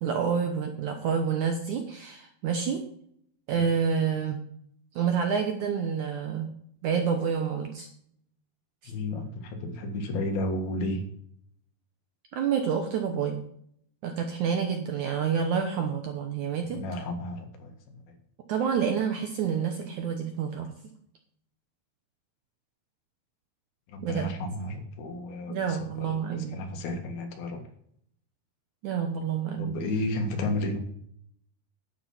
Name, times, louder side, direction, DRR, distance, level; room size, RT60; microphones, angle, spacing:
voice 1, 0.0-2.8 3.5-4.4 5.0-6.5 6.8-7.9 8.8-8.9 12.3-13.4 14.0-16.8 18.5-20.7 24.0-24.3 25.5-26.6 28.8-29.8, right 7 dB, 65° right, 5 dB, 2.0 m, -28 dB
voice 2, 8.9-11.0 16.6-18.0 23.9-27.6 29.6-30.8, left 2 dB, 70° left, 5 dB, 3.4 m, -33 dB
11.0 x 8.8 x 5.6 m, 0.67 s
omnidirectional pair, 4.7 m